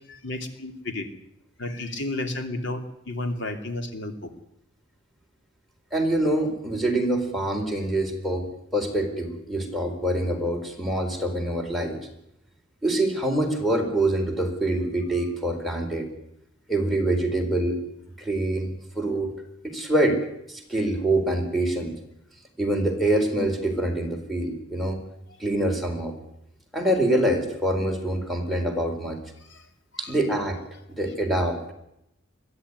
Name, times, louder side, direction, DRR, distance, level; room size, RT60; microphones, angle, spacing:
voice 1, 0.1-1.1 1.6-4.3 29.4-29.7 29.9-30.2, left 2 dB, 65° left, 6 dB, 3.0 m, -32 dB
voice 2, 5.9-8.5 8.7-12.0 12.8-16.1 16.7-17.8 18.2-19.3 19.6-20.2 20.5-21.9 22.6-25.0 25.4-26.2 26.7-29.2 30.0-30.6 30.9-31.7, right 1 dB, ahead, 2 dB, 4.3 m, -25 dB
22.0 x 14.0 x 9.7 m, 0.80 s
head